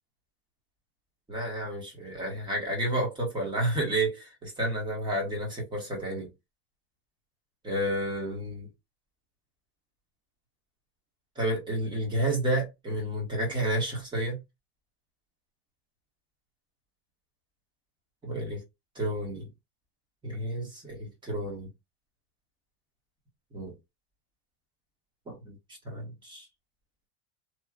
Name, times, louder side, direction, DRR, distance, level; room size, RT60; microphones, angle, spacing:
voice 1, 1.3-6.3 7.6-8.7 11.3-14.4 18.2-18.6 18.9-19.5 20.2-21.7 23.5-23.7 25.3-25.5 25.8-26.5, right 1 dB, 15° right, 1.3 m, -30 dB
3.1 x 2.6 x 2.4 m
supercardioid pair, 155°, 31 cm